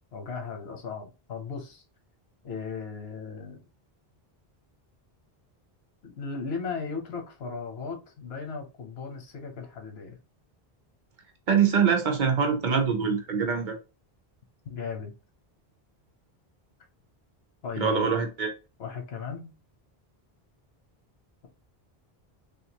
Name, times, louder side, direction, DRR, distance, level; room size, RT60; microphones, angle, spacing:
voice 1, 0.1-1.8 2.4-3.6 6.0-10.2 14.6-15.1 17.6-18.2 18.8-19.5, left 5 dB, 90° left, 1.1 m, -36 dB
voice 2, 11.5-13.8 17.8-18.5, right 6 dB, 55° right, 0.8 m, -24 dB
3.5 x 2.5 x 2.8 m
omnidirectional pair, 1.0 m